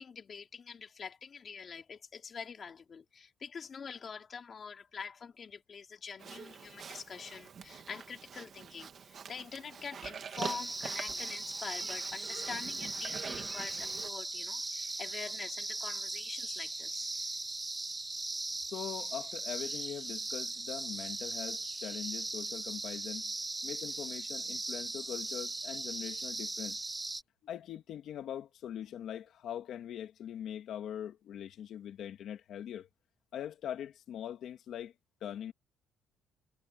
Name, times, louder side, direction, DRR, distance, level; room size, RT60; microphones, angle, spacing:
voice 1, 0.0-17.1, left 6 dB, 30° left, 3.1 m, -45 dB
Livestock farm animals working animals, 6.2-14.1, right 7 dB, 35° right, 2.0 m, -46 dB
sound 1, 10.4-27.2, right 2 dB, 10° right, 1.2 m, -39 dB
voice 2, 18.5-23.3 23.6-26.8 27.4-32.9 33.3-34.9 35.2-35.5, left 10 dB, 55° left, 2.4 m, -42 dB
cardioid pair, 175°, 0 cm